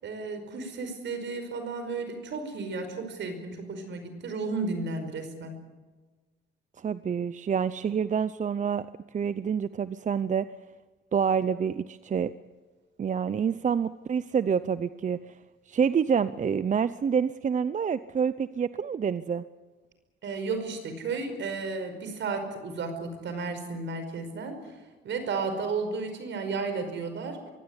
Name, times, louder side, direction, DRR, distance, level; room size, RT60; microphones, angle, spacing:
voice 1, 0.0-5.6 20.2-27.4, right 4 dB, 65° right, 8 dB, 5.2 m, -33 dB
voice 2, 6.8-8.9 9.1-10.5 11.1-12.3 13.0-15.4 15.7-19.4, right 7 dB, 40° right, 14 dB, 0.7 m, -27 dB
23.5 x 16.5 x 9.7 m, 1.3 s
cardioid pair, 90°, 20 cm